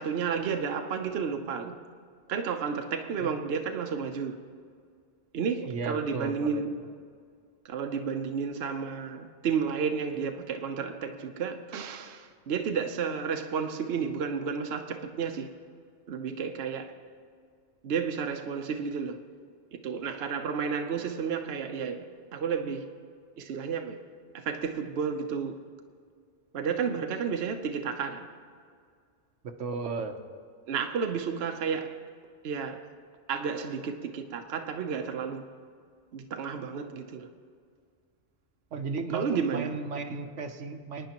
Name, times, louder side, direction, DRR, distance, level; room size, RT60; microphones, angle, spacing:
voice 1, 0.0-1.8 2.3-4.4 5.3-6.8 7.6-15.5 16.1-17.0 17.8-19.2 19.8-22.9 23.4-24.0 24.3-25.6 26.5-28.3 30.7-32.0 32.4-32.9 33.3-35.4 36.1-37.3 39.1-39.7, right 6 dB, 65° right, 0.9 m, -32 dB
voice 2, 5.7-6.9 29.4-30.2 38.7-41.1, right 4 dB, 85° right, 1.2 m, -35 dB
25.0 x 9.7 x 2.9 m
omnidirectional pair, 1.2 m